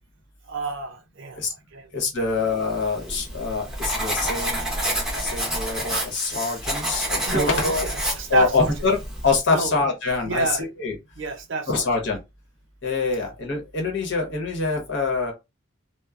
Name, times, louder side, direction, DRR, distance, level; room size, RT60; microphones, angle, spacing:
voice 1, 0.4-1.9 2.2-2.3 7.2-8.7 9.5-9.7 10.2-10.7 11.2-11.9, right 3 dB, 65° right, 0.5 m, -28 dB
voice 2, 1.9-4.7 5.2-7.9 8.3-9.0 9.2-10.9 11.7-12.2 12.8-15.3, left 4 dB, 65° left, 1.0 m, -25 dB
Writing, 2.7-9.4, right 1 dB, 5° right, 0.8 m, -29 dB
2.9 x 2.1 x 2.4 m
head